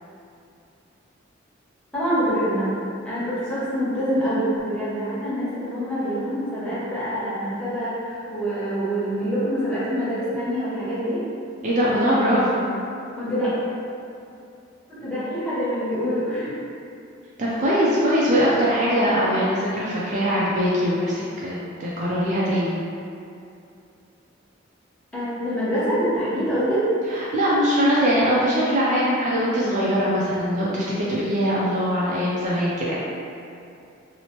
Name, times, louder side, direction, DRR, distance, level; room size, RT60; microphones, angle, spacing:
voice 1, 1.9-2.8 3.0-11.2 11.9-12.4 13.1-13.5 14.9-16.5 25.1-26.8, equal, 5° left, -12 dB, 0.8 m, -25 dB
voice 2, 11.6-12.7 17.4-22.8 27.1-32.9, equal, 40° right, -7 dB, 0.4 m, -22 dB
2.9 x 2.0 x 2.8 m, 2.6 s
head